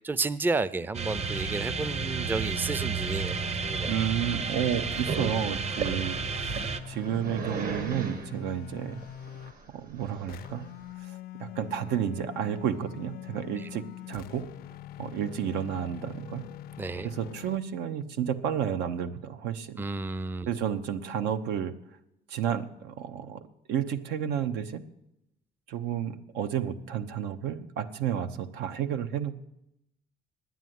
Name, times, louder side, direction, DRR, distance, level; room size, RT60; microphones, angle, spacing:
voice 1, 0.0-3.9 16.8-17.1 19.8-20.5, right 3 dB, 10° right, 17 dB, 0.4 m, -31 dB
sound 1, 0.9-6.8, right 5 dB, 40° right, 0.8 m, -32 dB
sound 2, 1.1-4.4 4.9-9.6 10.3-17.6, left 11 dB, 60° left, 0.5 m, -44 dB
voice 2, 3.8-9.0 9.7-10.7 11.1-14.4 15.0-16.4 17.0-19.8 20.5-21.7 22.3-23.4 23.7-24.8 25.7-29.3, right 9 dB, 85° right, 10 dB, 1.0 m, -31 dB
Growling, 5.1-10.9, right 5 dB, 60° right, 1.7 m, -36 dB
10.5 x 9.4 x 9.4 m, 0.83 s
cardioid pair, 110°, 17 cm